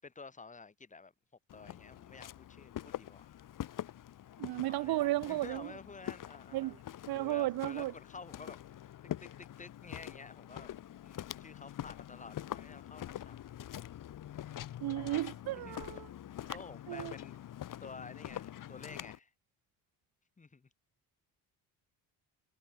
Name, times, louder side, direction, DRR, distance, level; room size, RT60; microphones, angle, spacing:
voice 1, 0.0-1.1 1.5-3.5 4.7-6.8 7.2-8.8 9.2-13.4 15.6-16.0 16.5-17.4 17.8-19.3 20.4-20.7, left 4 dB, 20° left, 6.6 m, -51 dB
Walk footsteps, 1.5-19.2, left 11 dB, 60° left, 5.3 m, -45 dB
voice 2, 4.4-5.7 6.5-6.8 7.1-7.9 14.8-16.1 16.9-17.1, right 16 dB, 85° right, 1.6 m, -34 dB
cardioid pair, 155°, 35 cm